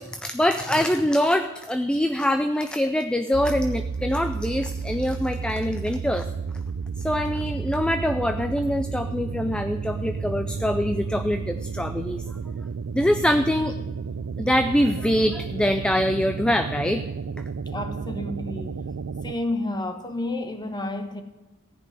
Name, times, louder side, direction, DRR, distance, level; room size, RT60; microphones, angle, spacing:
voice 1, 0.0-6.2 7.0-12.2 12.9-13.7 14.4-17.0, left 1 dB, 5° left, 0.4 m, -24 dB
sound 1, 3.3-19.3, right 5 dB, 70° right, 0.4 m, -32 dB
voice 2, 17.7-18.8 19.2-21.2, left 1 dB, 20° left, 1.1 m, -30 dB
14.5 x 5.3 x 9.7 m
head